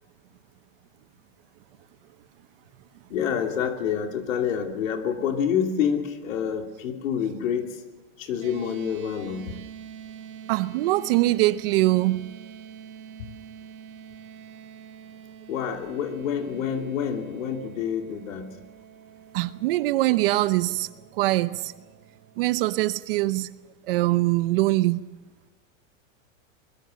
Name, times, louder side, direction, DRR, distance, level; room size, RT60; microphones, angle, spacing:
voice 1, 3.1-7.8 8.2-9.6 13.2-13.3 15.5-18.5, left 8 dB, 75° left, 2.9 m, -27 dB
sound 1, 8.4-22.8, right 8 dB, 80° right, 3.3 m, -46 dB
voice 2, 10.5-12.3 19.3-20.9 21.2-21.7 22.4-23.5 23.9-25.0, right 17 dB, 45° right, 0.8 m, -23 dB
23.0 x 21.0 x 6.5 m
supercardioid pair, 160°, 40 cm